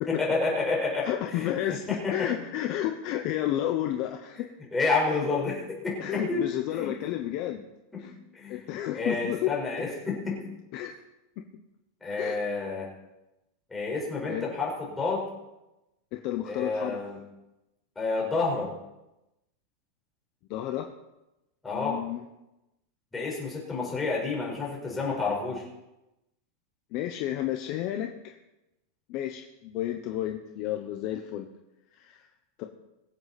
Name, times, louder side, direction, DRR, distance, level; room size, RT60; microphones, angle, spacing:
voice 1, 0.1-1.6 1.9-2.3 4.7-6.4 6.7-7.0 7.9-8.6 8.9-10.5 12.0-12.9 13.7-15.3 16.4-17.2 18.0-18.7 21.6-22.0 23.1-25.6, left 3 dB, 10° left, -3 dB, 4.6 m, -29 dB
voice 2, 1.0-1.8 2.1-4.5 5.1-5.3 6.0-7.6 8.0-8.1 8.5-9.5 10.7-10.9 12.2-12.4 14.3-14.5 16.1-17.0 20.5-20.9 21.7-22.2 26.9-28.3 29.1-31.5 32.0-32.2 32.6-32.7, left 12 dB, 40° left, 4 dB, 1.0 m, -31 dB
22.5 x 8.0 x 4.2 m, 0.95 s
supercardioid pair, 160°, 0 cm